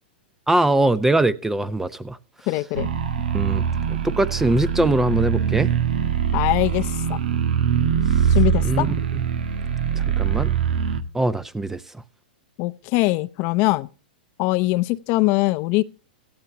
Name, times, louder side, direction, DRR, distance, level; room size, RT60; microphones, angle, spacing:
voice 1, 0.5-2.2 3.3-5.7 8.1-8.4 8.6-8.9 9.9-10.6 11.1-11.8, right 2 dB, 5° right, 0.7 m, -22 dB
voice 2, 2.5-2.9 6.3-7.2 8.3-8.9 12.6-13.9 14.4-15.8, left 20 dB, 45° left, 0.6 m, -22 dB
sound 1, 2.7-11.0, right 8 dB, 80° right, 1.3 m, -23 dB
17.5 x 13.5 x 2.9 m
hypercardioid pair, 120°, 5 cm